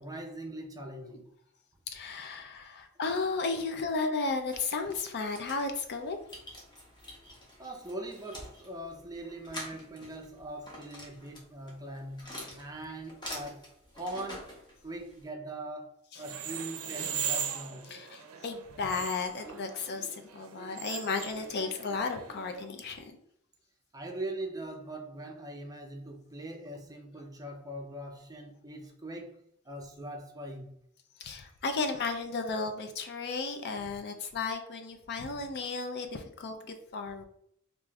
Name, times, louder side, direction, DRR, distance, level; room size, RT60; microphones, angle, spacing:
voice 1, 0.0-1.3 7.3-17.9 23.9-30.8, right 1 dB, 15° right, 0.5 m, -42 dB
voice 2, 1.9-6.2 17.9-23.2 31.2-37.2, left 4 dB, 50° left, 0.5 m, -34 dB
sound 1, 4.2-15.3, left 1 dB, 20° left, 1.0 m, -47 dB
sound 2, 16.2-22.6, right 8 dB, 75° right, 0.5 m, -39 dB
4.7 x 2.5 x 2.3 m
head